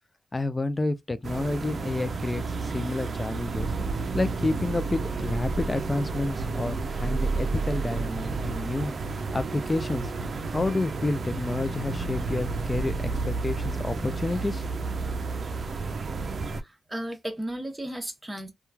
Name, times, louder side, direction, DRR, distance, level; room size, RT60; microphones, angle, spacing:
voice 1, 0.3-3.7 4.1-8.9 9.3-10.1 10.5-13.0 13.3-14.9, left 2 dB, 30° left, 0.5 m, -29 dB
sound 1, 1.2-16.6, right 4 dB, 60° right, 0.4 m, -31 dB
voice 2, 16.6-18.5, right 1 dB, 15° right, 0.9 m, -35 dB
3.0 x 2.3 x 2.2 m
supercardioid pair, 45°, 0 cm